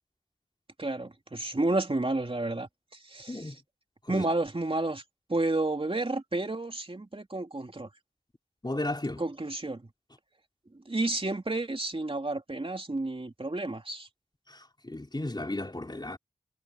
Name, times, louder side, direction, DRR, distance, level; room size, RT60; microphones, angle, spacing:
voice 1, 0.8-3.5 4.1-5.0 5.3-7.9 9.2-9.8 10.7-14.1, right 2 dB, 40° right, 2.9 m, -31 dB
voice 2, 8.6-9.2 14.5-16.2, left 2 dB, 30° left, 4.0 m, -34 dB
wide cardioid pair, 60°, 15 cm